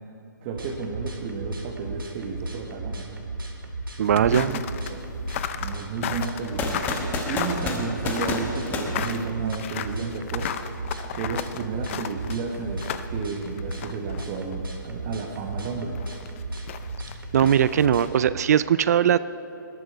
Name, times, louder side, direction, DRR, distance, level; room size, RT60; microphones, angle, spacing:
voice 1, 0.4-3.1 4.1-5.0 5.6-6.9 7.3-10.5 11.2-16.0, right 5 dB, 30° right, 0 dB, 1.4 m, -32 dB
sound 1, 0.5-18.3, right 2 dB, 85° right, 2.1 m, -35 dB
sound 2, 4.0-14.5 14.8-14.9 15.9-18.1, left 9 dB, 35° left, 0.6 m, -35 dB
voice 2, 4.0-4.5 17.3-19.2, right 9 dB, 50° right, 16 dB, 0.5 m, -20 dB
sound 3, 6.6-9.8, left 3 dB, 15° left, 1.3 m, -30 dB
20.5 x 12.5 x 4.5 m, 3.0 s
hypercardioid pair, 140°, 11 cm